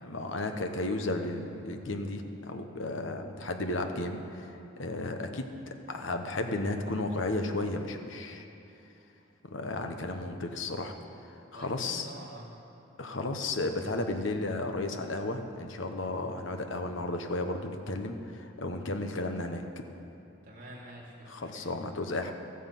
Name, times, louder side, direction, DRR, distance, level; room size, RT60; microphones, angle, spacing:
voice 1, 0.0-8.4 9.4-10.9 11.3-12.1 13.0-19.6 21.3-22.3, left 2 dB, 65° left, 5 dB, 1.0 m, -34 dB
voice 2, 11.5-12.5 20.4-21.7, right 1 dB, 40° right, -5 dB, 3.1 m, -47 dB
14.0 x 9.4 x 7.7 m, 3.0 s
head